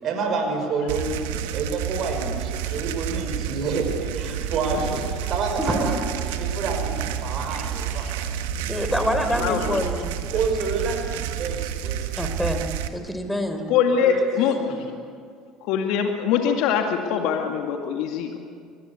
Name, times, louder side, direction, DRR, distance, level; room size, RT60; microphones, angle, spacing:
voice 1, 0.0-5.0 5.3-8.3 9.3-9.6 10.3-12.1 14.0-14.2 14.6-14.8, right 4 dB, 55° right, 4 dB, 5.5 m, -28 dB
sound 1, 0.9-12.9, right 9 dB, 75° right, 1.5 m, -29 dB
voice 2, 5.6-5.9 7.5-7.6 8.7-10.1 12.2-12.6 12.9-13.6, equal, 5° left, 7 dB, 4.1 m, -26 dB
voice 3, 7.9-8.3 9.3-9.9 13.7-14.8 15.6-18.4, left 7 dB, 65° left, 4 dB, 2.1 m, -24 dB
24.0 x 20.0 x 8.3 m, 2.2 s
hypercardioid pair, 70°, 0 cm